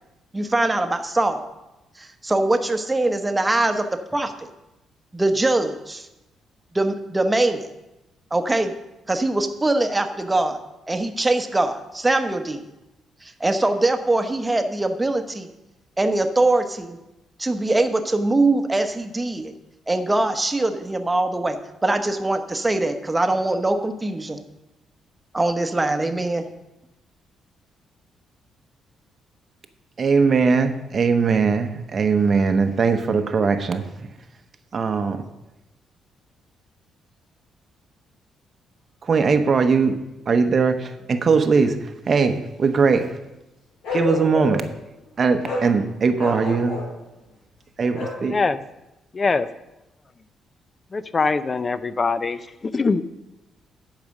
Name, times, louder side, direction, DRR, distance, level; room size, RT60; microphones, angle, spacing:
voice 1, 0.3-1.4 2.0-4.5 5.1-6.1 6.7-7.7 8.3-8.7 9.1-10.6 10.9-12.6 13.2-15.5 16.0-17.0 17.4-19.5 19.9-24.4 25.3-26.4, right 2 dB, 15° right, 7 dB, 0.9 m, -22 dB
voice 2, 30.0-34.1 34.7-35.2 39.0-43.2 43.9-44.7 45.2-46.8 47.8-48.4, right 5 dB, 45° right, 8 dB, 0.7 m, -20 dB
Bark, 43.8-44.7 45.4-45.7 46.2-46.9 47.9-48.2, left 3 dB, 90° left, 3.6 m, -28 dB
voice 3, 48.3-48.6 49.1-49.5 50.9-53.0, left 4 dB, 35° left, 13 dB, 0.5 m, -23 dB
11.0 x 4.9 x 6.4 m, 0.98 s
cardioid pair, 90°, 0 cm